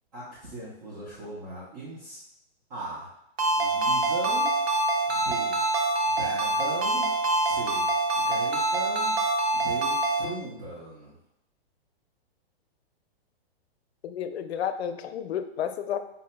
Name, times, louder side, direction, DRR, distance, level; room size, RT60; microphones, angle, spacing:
voice 1, 0.1-2.2 2.7-3.1 3.6-4.6 5.1-5.6 6.0-7.2 7.4-9.1 9.5-11.2, right 2 dB, 45° right, -7 dB, 1.0 m, -39 dB
Ringtone, 3.4-10.3, right 2 dB, 90° right, 0.8 m, -25 dB
voice 2, 14.0-16.0, left 9 dB, 85° left, 9 dB, 0.5 m, -31 dB
5.4 x 2.7 x 2.2 m, 0.80 s
hypercardioid pair, 155°, 31 cm